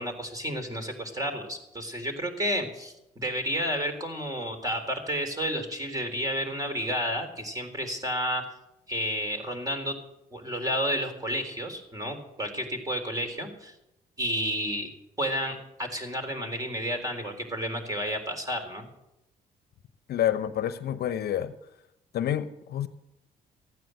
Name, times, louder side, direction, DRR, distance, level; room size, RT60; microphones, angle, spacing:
voice 1, 0.0-8.4 8.9-9.9 10.3-13.7 14.2-14.9 15.2-18.9, equal, 20° right, 5 dB, 3.7 m, -31 dB
voice 2, 20.1-21.5 22.1-22.9, left 11 dB, 65° left, 13 dB, 0.9 m, -28 dB
15.0 x 9.3 x 7.7 m, 0.87 s
supercardioid pair, 70°, 18 cm